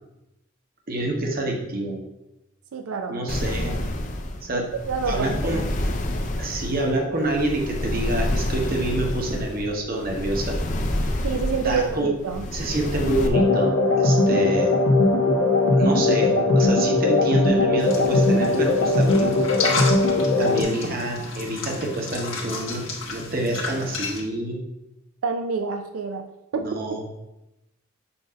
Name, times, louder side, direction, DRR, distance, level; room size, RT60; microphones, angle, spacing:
voice 1, 0.9-2.0 3.1-3.8 4.4-4.7 5.1-5.6 6.4-10.6 11.6-12.1 12.5-14.7 15.7-19.4 20.4-24.6 26.6-27.1, right 1 dB, 45° right, 1 dB, 1.0 m, -27 dB
voice 2, 2.7-3.2 4.5-5.6 11.2-12.5 25.2-26.3 26.5-26.8, right 5 dB, 90° right, 6 dB, 0.4 m, -27 dB
sound 1, 3.3-13.3, left 1 dB, 35° left, 0.5 m, -28 dB
sound 2, 13.3-20.6, left 2 dB, 85° left, 1.0 m, -19 dB
sound 3, 17.8-24.2, left 4 dB, 70° left, 1.3 m, -32 dB
7.0 x 2.6 x 5.1 m, 0.92 s
head